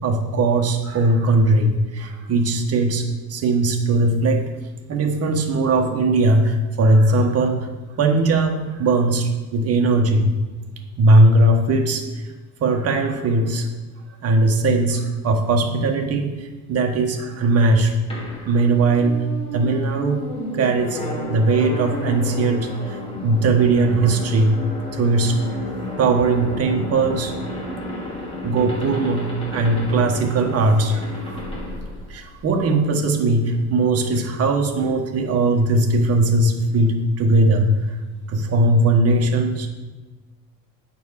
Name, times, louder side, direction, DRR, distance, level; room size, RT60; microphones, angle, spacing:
voice 1, 0.0-4.5 4.9-7.7 8.0-10.3 11.0-12.2 12.6-13.7 14.2-17.9 18.5-19.2 19.5-20.2 20.5-21.0 21.3-23.0 23.2-24.6 24.9-25.4 26.0-27.3 28.4-31.4 32.1-37.7 38.3-39.7, right 2 dB, 45° right, 3 dB, 1.4 m, -19 dB
sound 1, 18.1-32.8, left 1 dB, 15° left, 2.4 m, -32 dB
9.4 x 4.6 x 7.4 m, 1.2 s
cardioid pair, 130°, 33 cm